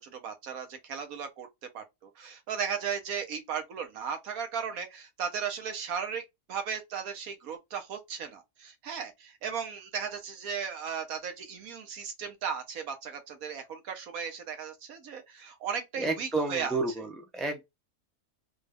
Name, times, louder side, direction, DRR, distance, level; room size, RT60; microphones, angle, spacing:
voice 1, 0.0-16.8, right 7 dB, 85° right, 1.4 m, -36 dB
voice 2, 16.0-17.6, right 3 dB, ahead, 0.4 m, -31 dB
3.8 x 2.4 x 3.3 m
omnidirectional pair, 1.4 m